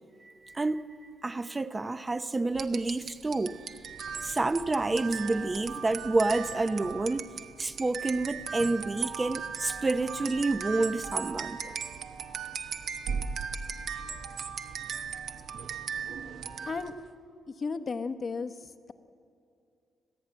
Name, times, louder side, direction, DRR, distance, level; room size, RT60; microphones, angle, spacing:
voice 1, 0.2-0.8 1.2-3.6 4.2-7.3 7.6-11.6, right 2 dB, 20° right, 0.7 m, -29 dB
sound 1, 2.5-17.0, right 6 dB, 60° right, 1.1 m, -37 dB
voice 2, 17.6-18.5, left 4 dB, 35° left, 1.0 m, -33 dB
26.0 x 16.0 x 9.3 m
cardioid pair, 130°, 0 cm